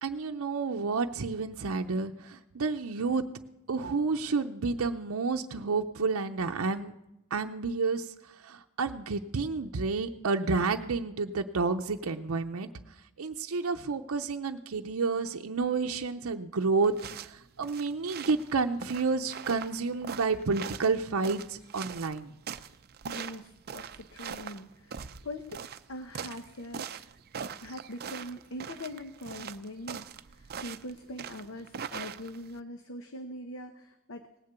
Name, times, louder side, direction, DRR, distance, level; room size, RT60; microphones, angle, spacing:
voice 1, 0.0-3.3 3.7-6.9 7.3-8.1 8.4-12.7 13.2-22.3, right 4 dB, 85° right, 4 dB, 0.6 m, -30 dB
sound 1, 16.8-32.6, right 7 dB, 45° right, 0.5 m, -42 dB
voice 2, 23.1-25.6 25.9-27.1 27.6-30.0 30.3-34.4, left 1 dB, 65° left, 6 dB, 0.9 m, -42 dB
18.5 x 6.6 x 8.2 m, 0.90 s
head